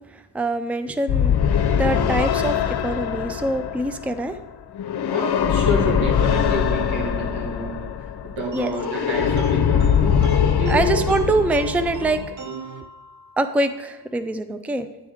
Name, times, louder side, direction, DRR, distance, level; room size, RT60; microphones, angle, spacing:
voice 1, 0.3-4.3 8.5-8.7 10.7-12.2 13.4-14.9, right 2 dB, 5° right, 10 dB, 0.5 m, -24 dB
sound 1, 1.1-12.3, left 8 dB, 55° left, 0.8 m, -22 dB
voice 2, 5.1-11.4, equal, 85° right, -2 dB, 2.1 m, -28 dB
sound 2, 8.5-13.6, right 5 dB, 40° right, 0.8 m, -39 dB
9.9 x 3.4 x 6.3 m, 1.2 s
supercardioid pair, 50°, 46 cm